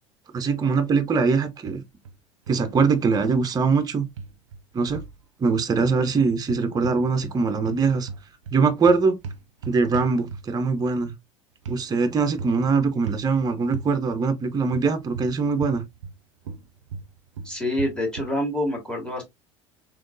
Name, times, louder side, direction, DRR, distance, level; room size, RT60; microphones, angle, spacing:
voice 1, 0.3-1.8 2.5-4.1 4.7-5.0 5.4-8.1 8.5-9.2 9.7-11.1 11.7-15.8, right 4 dB, 25° right, 0.6 m, -22 dB
sound 1, 1.7-2.2 2.5-2.9 4.2-5.2 6.4-7.4 7.6-10.7 11.7-11.8 12.4-12.7 13.1-13.3 13.7-13.9 14.7-16.2 16.4-18.4, right 4 dB, 85° right, 0.4 m, -36 dB
voice 2, 17.4-19.2, left 1 dB, 5° left, 2.0 m, -26 dB
3.6 x 2.9 x 2.5 m
hypercardioid pair, 70°, 16 cm